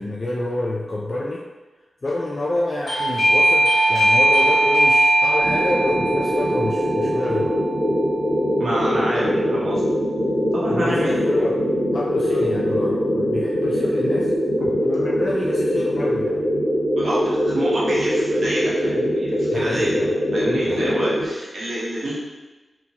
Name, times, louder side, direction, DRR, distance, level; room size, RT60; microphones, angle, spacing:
voice 1, 0.0-1.4 2.0-7.6 10.7-11.5 11.9-14.3 14.8-16.4 19.5-20.1 20.7-20.9, left 1 dB, 45° left, -4 dB, 0.3 m, -27 dB
Doorbell, 2.9-9.3, right 1 dB, 70° left, 0.7 m, -20 dB
sound 1, 5.4-21.3, equal, 15° right, 1.2 m, -22 dB
voice 2, 8.6-9.8 10.5-11.2 14.6-14.7 16.9-19.9 20.3-22.2, right 1 dB, 70° right, -6 dB, 0.9 m, -28 dB
2.9 x 2.1 x 2.8 m, 1.2 s
wide cardioid pair, 85°, 0 cm